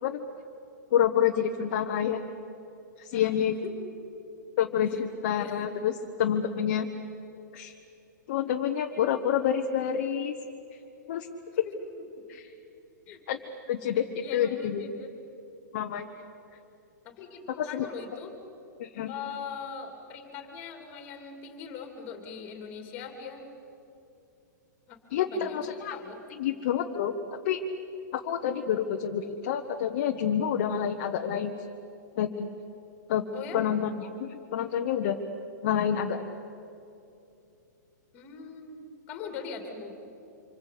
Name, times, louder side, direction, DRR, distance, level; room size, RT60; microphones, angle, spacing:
voice 1, 0.9-2.2 3.0-3.6 4.6-6.9 7.5-7.7 8.3-10.3 11.1-11.3 11.6-11.7 12.3-12.5 13.3-13.4 13.7-14.9 15.7-16.1 17.6-17.9 18.8-19.1 25.1-26.0 26.4-27.1 27.4-27.6 28.1-31.5 32.2-32.5 33.1-33.2 33.5-35.2 35.6-36.3, left 9 dB, 35° left, 3 dB, 1.2 m, -28 dB
voice 2, 4.8-5.6 11.6-11.7 12.2-12.3 13.1-13.2 14.2-15.1 17.0-18.4 19.1-23.5 24.9-25.6 25.9-26.6 33.3-33.6 38.1-39.9, left 6 dB, 20° left, 5 dB, 3.1 m, -41 dB
26.5 x 25.5 x 8.6 m, 2.8 s
hypercardioid pair, 180°, 10 cm